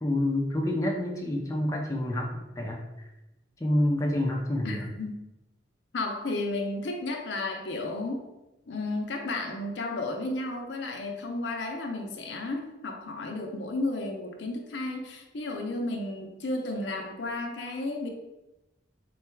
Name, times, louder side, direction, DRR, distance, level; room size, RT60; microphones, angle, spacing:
voice 1, 0.0-2.8 3.6-4.8, left 1 dB, 15° left, -1 dB, 0.5 m, -28 dB
voice 2, 4.6-5.2 5.9-8.2 8.7-18.1, left 2 dB, 75° left, 3 dB, 0.6 m, -33 dB
3.8 x 2.3 x 4.4 m, 0.95 s
head